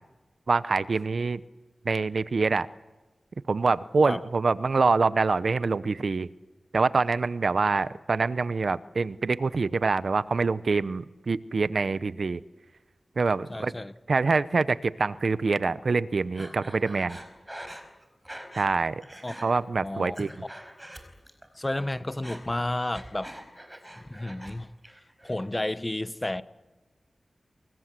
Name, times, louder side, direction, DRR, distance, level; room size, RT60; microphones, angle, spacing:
voice 1, 0.5-1.4 1.8-2.7 3.5-6.3 6.7-12.4 13.2-13.7 14.1-17.2 18.5-19.0 19.4-20.3, right 4 dB, 65° right, 0.8 m, -25 dB
voice 2, 13.5-13.9 19.2-19.3 19.8-20.2 21.6-23.3 24.1-24.7 25.2-26.4, left 1 dB, 20° left, 1.0 m, -31 dB
Breathing, 16.3-18.7 19.0-19.5 19.9-21.5 21.7-24.5 24.8-25.5, right 1 dB, 10° right, 4.9 m, -44 dB
28.5 x 23.0 x 7.6 m
wide cardioid pair, 90°, 0 cm